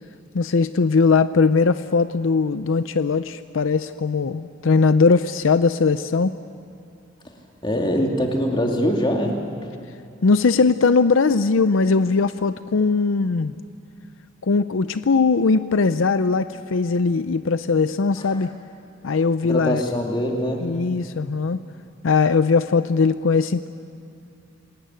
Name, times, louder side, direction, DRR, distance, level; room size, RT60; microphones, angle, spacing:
voice 1, 0.3-6.3 10.2-13.5 14.4-18.5 19.0-19.8 20.6-21.6 22.0-23.7, left 4 dB, 75° left, 12 dB, 0.6 m, -20 dB
voice 2, 7.6-9.4 19.4-20.6, equal, 25° left, 1 dB, 2.8 m, -23 dB
27.5 x 19.5 x 9.2 m, 2.5 s
head